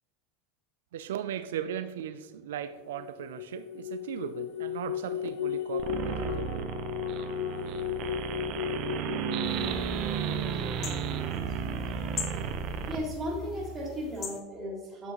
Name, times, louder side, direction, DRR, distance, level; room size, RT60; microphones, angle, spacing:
voice 1, 0.9-6.7, right 9 dB, 80° right, 0.3 m, -37 dB
sound 1, 2.9-10.7, left 10 dB, 65° left, 0.4 m, -36 dB
sound 2, 5.8-13.0, right 7 dB, 55° right, 0.8 m, -33 dB
sound 3, 9.4-14.4, left 4 dB, 45° left, 1.3 m, -41 dB
voice 2, 12.9-15.1, equal, 30° right, 2.0 m, -35 dB
8.8 x 6.0 x 3.0 m
hypercardioid pair, 100°, 0 cm